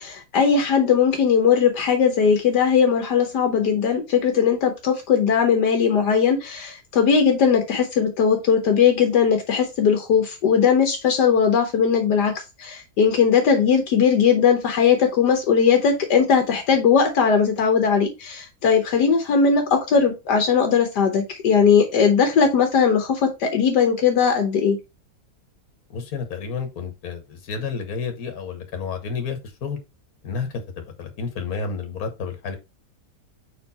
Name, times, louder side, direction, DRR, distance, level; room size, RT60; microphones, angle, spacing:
voice 1, 0.0-12.3 12.6-24.8, left 6 dB, 75° left, 4 dB, 1.6 m, -19 dB
voice 2, 25.9-29.8 30.2-32.6, left 5 dB, 60° left, 5 dB, 1.7 m, -30 dB
5.0 x 4.5 x 4.1 m, 0.25 s
omnidirectional pair, 1.8 m